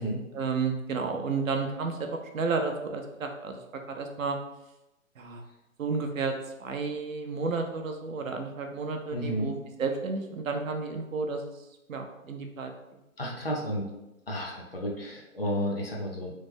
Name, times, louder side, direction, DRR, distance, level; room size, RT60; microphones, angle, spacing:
voice 1, 0.3-3.6 3.9-4.4 5.2-5.4 5.8-6.3 6.6-11.6 11.9-13.0, right 4 dB, 70° right, 4 dB, 0.6 m, -32 dB
voice 2, 9.1-9.5 13.2-13.9 14.3-16.3, equal, 45° left, -2 dB, 0.5 m, -32 dB
3.1 x 2.0 x 3.4 m, 0.94 s
hypercardioid pair, 180°, 42 cm